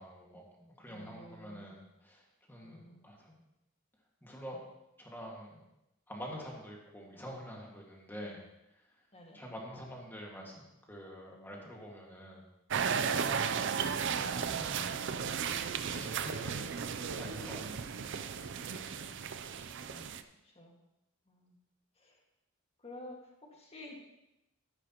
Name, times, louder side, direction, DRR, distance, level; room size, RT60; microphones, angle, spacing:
voice 1, 0.0-3.3 4.2-4.6 5.0-5.6 6.1-8.4 8.7-8.8 9.3-12.4 14.0-14.9 15.8-17.8 19.8-20.2, equal, 10° left, -1 dB, 1.9 m, -47 dB
voice 2, 0.9-1.8 2.6-3.0 9.1-9.4 18.7-19.4 20.4-20.7 21.3-21.6 22.0-22.2 22.8-24.0, left 1 dB, 30° left, 0 dB, 1.9 m, -51 dB
sound 1, 12.7-20.2, right 6 dB, 60° right, 0.5 m, -35 dB
13.0 x 9.9 x 3.0 m, 0.90 s
head